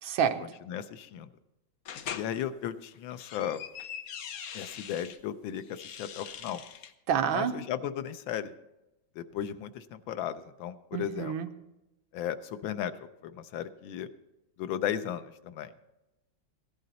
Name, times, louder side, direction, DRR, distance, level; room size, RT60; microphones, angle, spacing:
voice 1, 0.0-0.4 7.1-7.5 10.9-11.5, right 8 dB, 90° right, 8 dB, 1.6 m, -28 dB
voice 2, 0.7-1.3 2.1-3.6 4.5-6.6 7.3-8.5 9.2-11.3 12.1-12.9 13.2-14.1 14.6-15.9, left 10 dB, 85° left, 11 dB, 1.5 m, -35 dB
sound 1, 1.9-2.3 3.0-5.2 5.6-6.9, left 8 dB, 65° left, 0.9 m, -42 dB
16.5 x 10.5 x 4.0 m, 0.95 s
omnidirectional pair, 2.1 m